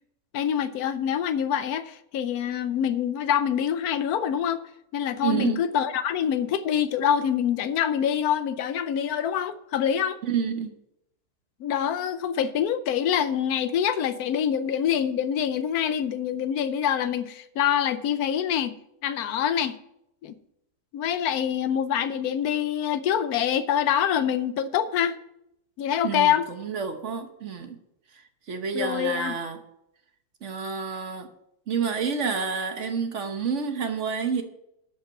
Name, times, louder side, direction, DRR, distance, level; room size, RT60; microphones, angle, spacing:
voice 1, 0.3-4.6 4.9-10.2 11.6-18.7 19.0-19.8 20.2-20.3 20.9-25.2 25.8-26.5 28.7-29.4, left 9 dB, 80° left, 13 dB, 1.2 m, -25 dB
voice 2, 5.2-5.7 10.2-10.7 26.0-27.8 28.5-29.6 30.4-31.3 31.7-34.4, right 6 dB, 55° right, 6 dB, 1.3 m, -29 dB
12.0 x 5.5 x 5.9 m, 0.80 s
omnidirectional pair, 1.6 m